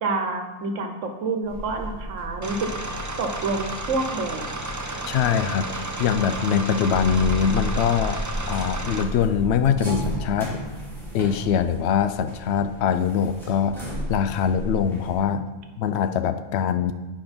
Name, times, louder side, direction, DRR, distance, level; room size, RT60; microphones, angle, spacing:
voice 1, 0.0-2.7 3.2-4.5, right 3 dB, 75° right, 5 dB, 1.3 m, -28 dB
sound 1, 1.4-15.2, right 1 dB, ahead, 2.5 m, -34 dB
sound 2, 2.4-9.0, right 2 dB, 25° right, 0.4 m, -32 dB
voice 2, 5.1-8.2 8.5-10.5 11.1-13.8 14.1-16.9, left 7 dB, 65° left, 10 dB, 0.8 m, -23 dB
9.2 x 5.1 x 5.2 m, 1.2 s
omnidirectional pair, 1.3 m